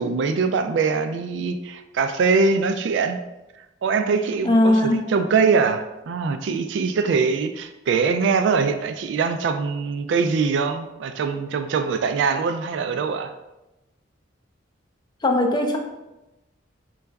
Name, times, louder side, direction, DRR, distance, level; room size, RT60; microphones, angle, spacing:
voice 1, 0.0-3.2 3.8-13.3, right 5 dB, 70° right, 8 dB, 0.3 m, -22 dB
voice 2, 4.4-5.1 15.2-15.8, left 1 dB, 25° left, 3 dB, 0.4 m, -19 dB
4.0 x 2.3 x 3.4 m, 0.99 s
head